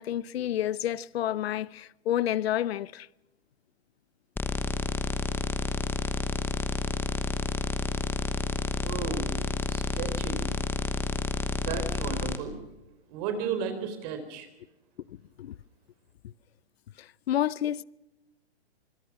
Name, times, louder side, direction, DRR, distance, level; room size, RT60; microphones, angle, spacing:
voice 1, 0.0-3.1 15.1-15.6 17.0-17.8, left 11 dB, 65° left, 0.8 m, -30 dB
sound 1, 4.4-12.4, left 4 dB, 5° left, 1.1 m, -30 dB
voice 2, 8.8-10.5 11.5-12.5 13.1-14.5, right 7 dB, 40° right, 4.1 m, -34 dB
25.5 x 22.0 x 6.1 m
hypercardioid pair, 145°, 33 cm